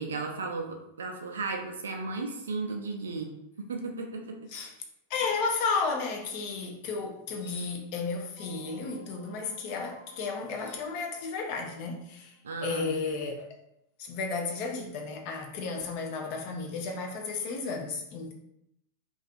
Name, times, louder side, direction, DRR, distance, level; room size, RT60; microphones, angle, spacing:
voice 1, 0.0-3.3 3.6-4.4 12.4-12.9, right 3 dB, 65° right, 0.4 m, -35 dB
sound 1, 4.4-4.8 7.3-7.8 10.5-10.9, left 2 dB, 70° left, 0.8 m, -51 dB
voice 2, 5.1-13.6 14.0-18.3, left 4 dB, 45° left, 0.4 m, -33 dB
sound 2, 8.4-12.6, right 1 dB, 35° right, 0.7 m, -55 dB
2.4 x 2.4 x 2.4 m
figure-of-eight pair, 90°, 0 cm